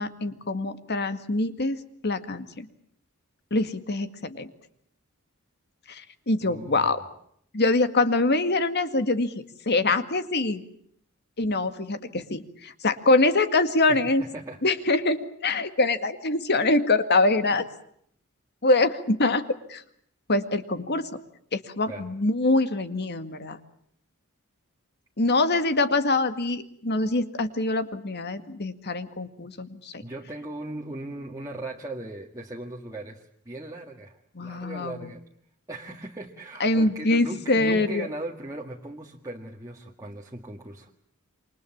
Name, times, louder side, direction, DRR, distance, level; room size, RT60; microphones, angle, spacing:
voice 1, 0.0-2.7 3.5-4.5 5.9-7.0 7.5-9.3 9.7-10.6 11.4-14.2 14.6-17.7 18.6-19.4 19.7-19.8 20.3-21.1 21.5-23.6 25.2-30.0 34.4-35.1 36.6-38.1, left 2 dB, 50° left, 10 dB, 2.0 m, -24 dB
voice 2, 6.4-6.9 13.9-14.6 21.9-22.1 30.0-35.2 35.7-40.9, right 1 dB, 15° right, -2 dB, 1.9 m, -38 dB
28.0 x 25.0 x 7.2 m, 0.68 s
head